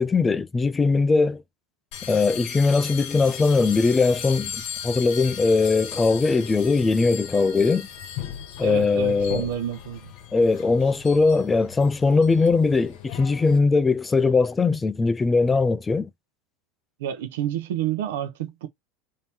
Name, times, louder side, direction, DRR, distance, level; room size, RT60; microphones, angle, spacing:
voice 1, 0.0-1.4 2.0-7.9 8.6-9.5 10.3-16.1, left 4 dB, 15° left, 0.4 m, -20 dB
sound 1, 1.9-13.6, left 8 dB, 60° left, 0.9 m, -37 dB
voice 2, 8.6-10.1 17.0-18.7, right 10 dB, 90° right, 0.7 m, -29 dB
3.4 x 2.8 x 4.3 m
supercardioid pair, 145°, 0 cm